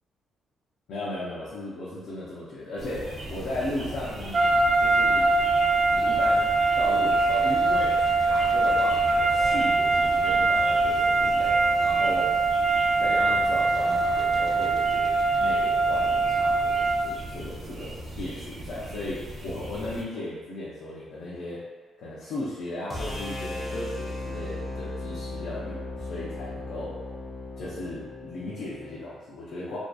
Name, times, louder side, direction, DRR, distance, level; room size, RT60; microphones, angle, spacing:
voice 1, 0.9-5.5 5.9-8.0 8.2-12.3 13.0-21.7 22.0-27.0 27.6-29.8, left 1 dB, 70° left, -7 dB, 0.5 m, -36 dB
sound 1, 2.8-20.0, right 1 dB, 55° right, 0.7 m, -39 dB
sound 2, 4.3-17.2, right 3 dB, 40° right, 0.3 m, -23 dB
sound 3, 22.9-29.0, left 2 dB, 25° left, 0.6 m, -36 dB
2.6 x 2.3 x 2.2 m, 1.4 s
cardioid pair, 120°, 0 cm